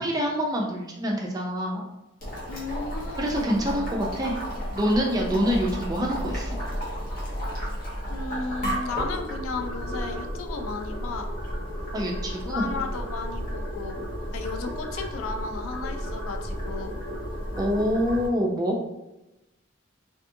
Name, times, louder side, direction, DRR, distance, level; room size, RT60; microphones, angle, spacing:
voice 1, 0.0-1.9 3.2-4.4 4.7-6.6 11.9-12.7 17.6-18.8, equal, 20° right, 0 dB, 0.3 m, -26 dB
Boiling, 2.2-18.3, equal, 45° left, 0.8 m, -33 dB
voice 2, 2.5-3.6 8.1-11.3 12.4-14.0 14.3-17.0, left 4 dB, 85° left, 5 dB, 0.3 m, -34 dB
2.6 x 2.4 x 2.6 m, 0.96 s
head